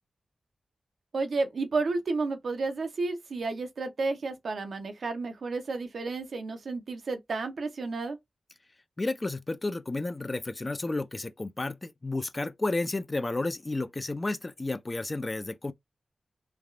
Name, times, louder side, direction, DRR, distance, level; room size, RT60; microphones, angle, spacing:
voice 1, 1.1-8.2, right 3 dB, 80° right, 0.7 m, -31 dB
voice 2, 9.0-15.7, left 2 dB, 35° left, 0.4 m, -32 dB
3.3 x 2.3 x 2.4 m
cardioid pair, 60°, 0 cm